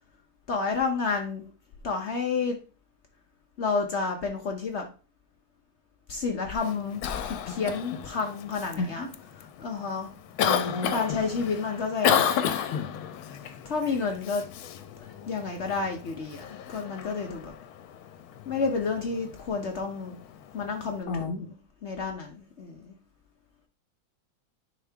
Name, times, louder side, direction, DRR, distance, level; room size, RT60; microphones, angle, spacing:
voice 1, 0.5-1.4 1.8-2.6 3.6-4.8 6.1-9.1 9.3-10.1 10.9-12.3 13.6-14.4 15.0-17.5 18.5-20.2 20.5-21.5 21.8-22.9, left 4 dB, 70° left, 3 dB, 0.6 m, -30 dB
Cough, 6.6-21.0, left 9 dB, 85° left, 1.5 m, -33 dB
voice 2, 8.8-9.1 10.4-11.0 21.1-21.5, left 3 dB, 55° left, 1 dB, 1.3 m, -31 dB
10.0 x 3.7 x 3.4 m, 0.36 s
omnidirectional pair, 2.2 m